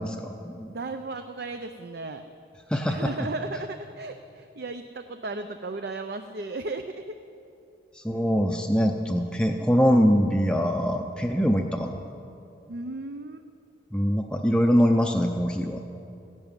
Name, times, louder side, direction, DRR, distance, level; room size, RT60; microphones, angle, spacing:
voice 1, 0.0-0.7 2.7-3.1 7.9-12.0 13.9-15.8, equal, 5° left, 2 dB, 0.5 m, -23 dB
voice 2, 0.7-2.2 2.9-7.2 12.7-13.4, right 3 dB, 55° right, 8 dB, 0.6 m, -35 dB
14.5 x 11.0 x 8.9 m, 2.7 s
head